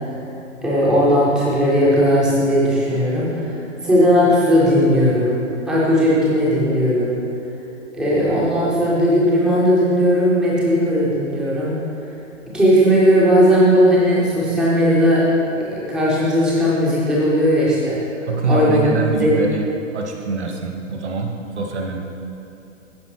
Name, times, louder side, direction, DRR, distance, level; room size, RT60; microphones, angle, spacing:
voice 1, 0.6-3.6 3.8-7.2 7.9-11.7 12.5-15.2 15.6-18.0 18.5-18.8 19.2-19.4, equal, ahead, -6 dB, 0.5 m, -17 dB
voice 2, 18.3-19.7 19.9-22.0, right 3 dB, 60° right, 2 dB, 1.2 m, -24 dB
14.5 x 5.5 x 3.1 m, 2.7 s
figure-of-eight pair, 120°, 39 cm